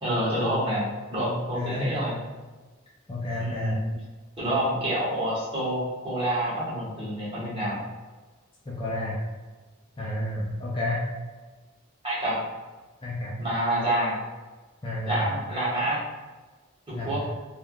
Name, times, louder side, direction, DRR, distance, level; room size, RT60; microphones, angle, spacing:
voice 1, 0.0-2.2 3.4-3.9 4.4-7.8 12.0-12.4 13.4-14.2 15.1-16.0 16.9-17.2, right 1 dB, 25° right, -9 dB, 1.2 m, -28 dB
voice 2, 1.5-1.9 3.1-3.8 8.7-9.2 10.0-11.0 13.0-13.3 14.8-15.3 16.9-17.3, left 1 dB, 25° left, -5 dB, 0.4 m, -30 dB
3.3 x 2.3 x 2.3 m, 1.3 s
head